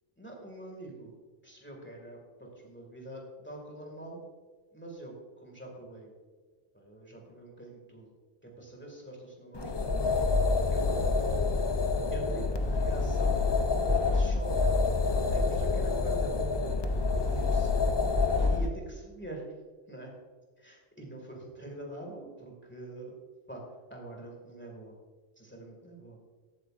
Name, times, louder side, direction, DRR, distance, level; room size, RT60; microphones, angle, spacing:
voice 1, 0.2-1.1 1.4-4.2 4.7-6.1 6.7-8.1 8.4-10.1 10.7-11.6 12.1-13.5 13.8-14.8 15.3-16.4 16.6-17.8 18.4-19.4 19.9-20.1 20.6-23.1 23.5-23.6 23.9-25.0 25.4-26.2, right 2 dB, 10° left, 0 dB, 2.1 m, -44 dB
sound 1, 9.5-18.7, left 3 dB, 35° left, 0.4 m, -27 dB
15.0 x 8.4 x 2.6 m, 1.5 s
omnidirectional pair, 1.1 m